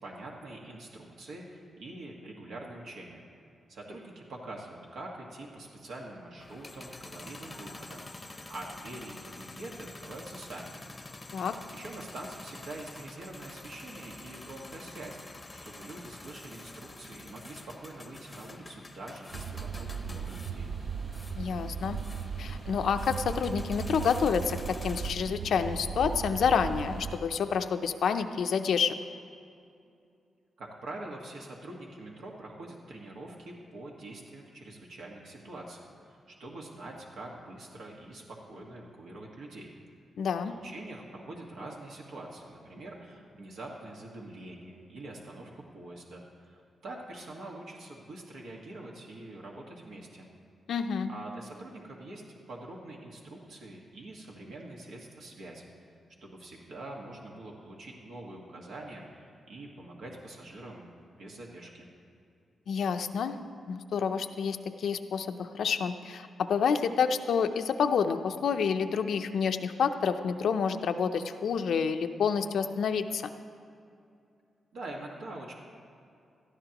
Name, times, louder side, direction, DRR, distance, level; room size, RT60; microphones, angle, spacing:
voice 1, 0.0-3.2 3.7-10.8 11.7-15.2 15.6-20.7 30.6-39.7 40.4-50.3 51.1-52.2 52.5-55.7 56.2-60.9 61.2-61.9 74.7-75.5, right 2 dB, 80° right, -1 dB, 1.6 m, -45 dB
sound 1, 6.4-25.1, left 2 dB, 20° left, 0.7 m, -47 dB
sound 2, 19.3-27.2, right 6 dB, 50° right, 0.4 m, -37 dB
voice 2, 21.4-22.0 22.4-28.9 40.2-40.5 50.7-51.1 62.7-63.4 63.7-73.3, left 6 dB, 75° left, 8 dB, 0.5 m, -28 dB
18.0 x 13.0 x 3.0 m, 2.5 s
wide cardioid pair, 125°, 0 cm